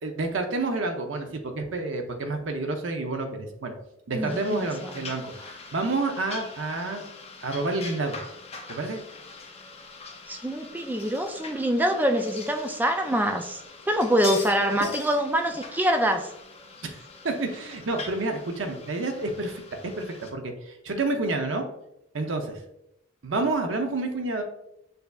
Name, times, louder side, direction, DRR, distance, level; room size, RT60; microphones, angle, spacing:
voice 1, 0.0-3.7 4.1-7.1 7.4-8.2 8.7-9.0 14.8-14.9 16.8-17.0 17.2-21.6 22.1-22.6 23.2-24.4, right 2 dB, 80° right, 5 dB, 0.7 m, -29 dB
voice 2, 4.1-5.0 10.3-13.6 13.9-16.3, equal, 10° right, 5 dB, 0.3 m, -25 dB
sound 1, 4.3-20.3, left 4 dB, 30° left, 0.6 m, -43 dB
6.6 x 2.7 x 2.4 m, 0.81 s
head